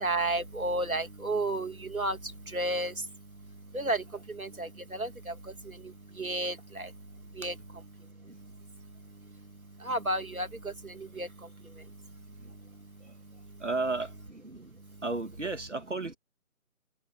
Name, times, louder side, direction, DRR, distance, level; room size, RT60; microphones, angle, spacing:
voice 1, 0.0-2.2 2.5-2.9 3.7-4.0 4.4-5.3 6.2-6.9 7.4-7.5 9.9-10.5 11.2-11.3, right 1 dB, 65° right, 2.7 m, -31 dB
voice 2, 13.6-14.1 15.0-16.1, right 3 dB, 50° right, 2.4 m, -33 dB
figure-of-eight pair, 165°, 44 cm